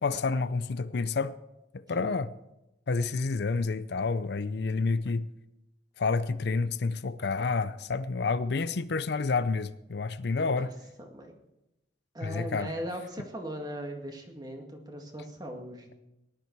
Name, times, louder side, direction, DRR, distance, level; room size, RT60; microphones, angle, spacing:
voice 1, 0.0-1.4 1.9-2.3 2.9-5.3 6.0-10.7 12.2-12.7, left 4 dB, 65° left, 0.5 m, -29 dB
voice 2, 10.4-10.7 11.0-11.3 12.1-15.9, equal, 20° right, 2.0 m, -39 dB
18.0 x 11.5 x 4.6 m
head